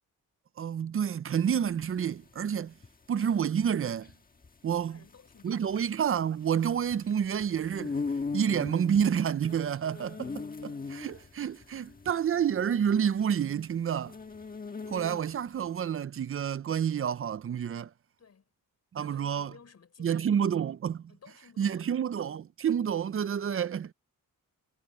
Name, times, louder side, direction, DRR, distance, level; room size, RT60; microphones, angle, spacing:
voice 1, 0.6-2.7 3.1-4.1 4.6-5.0 5.4-8.0 8.3-14.1 14.9-17.9 18.9-19.5 20.0-21.1 21.6-23.9, right 8 dB, 40° right, 0.5 m, -29 dB
sound 1, 1.3-15.5, left 4 dB, 25° left, 1.5 m, -40 dB
voice 2, 4.7-5.8 18.2-18.5 18.9-20.7 21.1-22.0, left 6 dB, 50° left, 6.2 m, -57 dB
wide cardioid pair, 180°, 34 cm